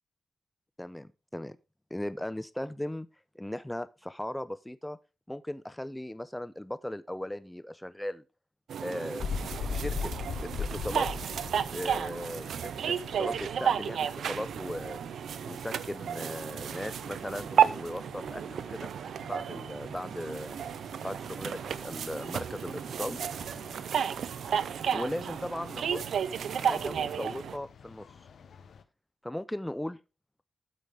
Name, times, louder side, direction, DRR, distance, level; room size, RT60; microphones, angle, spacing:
voice 1, 0.8-1.6 1.9-3.1 3.3-5.0 5.3-8.2 8.8-9.2 9.7-10.1 10.4-11.1 11.7-15.0 15.4-18.9 19.2-20.6 21.0-23.2 24.9-26.0 26.5-28.1 29.2-30.0, left 1 dB, 10° left, 0.5 m, -37 dB
sound 1, 8.7-27.6, right 8 dB, 80° right, 0.4 m, -32 dB
sound 2, 9.2-28.8, left 6 dB, 75° left, 0.8 m, -43 dB
12.5 x 5.1 x 3.7 m
cardioid pair, 60°, 0 cm